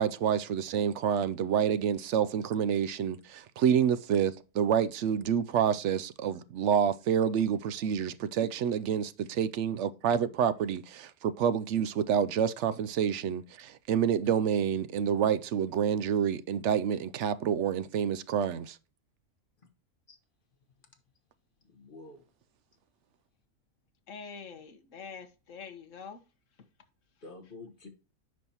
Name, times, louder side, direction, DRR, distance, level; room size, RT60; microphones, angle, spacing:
voice 1, 0.0-18.8, right 8 dB, 65° right, 0.7 m, -28 dB
voice 2, 21.6-22.2 27.2-27.9, left 2 dB, 35° left, 1.5 m, -48 dB
voice 3, 24.1-26.2, left 6 dB, 60° left, 1.4 m, -45 dB
9.3 x 5.3 x 2.9 m
omnidirectional pair, 1.6 m